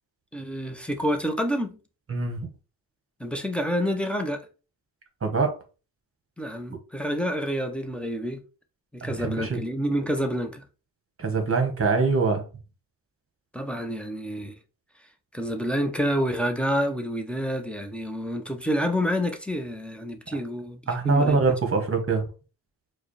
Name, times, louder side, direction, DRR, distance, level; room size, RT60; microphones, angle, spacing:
voice 1, 0.3-1.8 3.2-4.5 6.4-8.4 8.9-10.6 13.5-14.6 15.3-20.8 21.0-21.4, equal, 5° left, 0.4 m, -28 dB
voice 2, 2.1-2.5 5.2-5.6 9.0-9.6 11.2-12.4 20.9-22.2, right 4 dB, 30° right, 1.0 m, -23 dB
4.7 x 2.1 x 3.1 m
cardioid pair, 115°, 42 cm